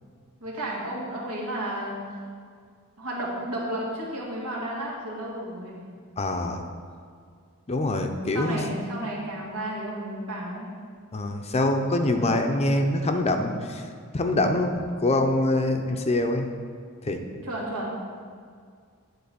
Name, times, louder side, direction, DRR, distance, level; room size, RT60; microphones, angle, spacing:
voice 1, 0.4-2.2 3.0-5.8 8.3-10.7 17.4-17.9, right 1 dB, 85° right, -4 dB, 2.1 m, -32 dB
voice 2, 6.2-6.6 7.7-8.6 11.1-13.9 14.1-16.5 17.0-17.2, left 2 dB, 30° left, 5 dB, 0.6 m, -24 dB
9.4 x 4.0 x 6.8 m, 2.1 s
head